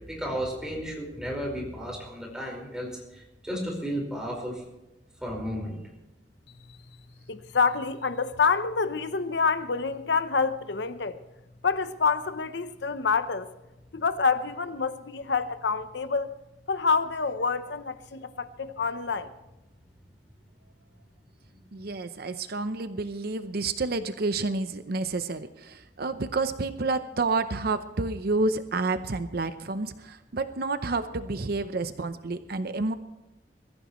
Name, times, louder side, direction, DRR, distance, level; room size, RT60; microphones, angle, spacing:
voice 1, 0.0-4.6 5.2-5.8, equal, 5° right, 4.9 m, -33 dB
voice 2, 7.3-11.2 11.6-13.5 13.9-16.3 16.7-19.3, left 5 dB, 75° left, 0.8 m, -27 dB
voice 3, 21.7-32.9, right 3 dB, 60° right, 0.7 m, -29 dB
22.5 x 14.5 x 3.1 m
head